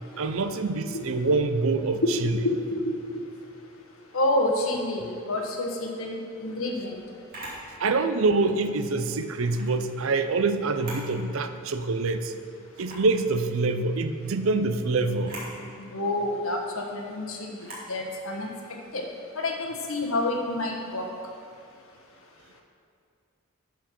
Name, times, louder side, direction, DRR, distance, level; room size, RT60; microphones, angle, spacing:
voice 1, 0.2-2.4 7.8-12.3 12.8-15.4, right 3 dB, 70° right, 9 dB, 0.5 m, -25 dB
voice 2, 2.0-3.2 4.1-7.0 15.8-17.6 17.9-18.5 18.9-19.1 19.4-21.1, left 2 dB, 75° left, 2 dB, 1.2 m, -28 dB
Camera, 7.3-7.6 9.4-9.7 10.6-11.1 11.6-11.7 12.7-13.1 15.1-15.5 17.6-17.9, right 1 dB, 40° right, 2.3 m, -40 dB
11.0 x 4.5 x 6.0 m, 2.3 s
head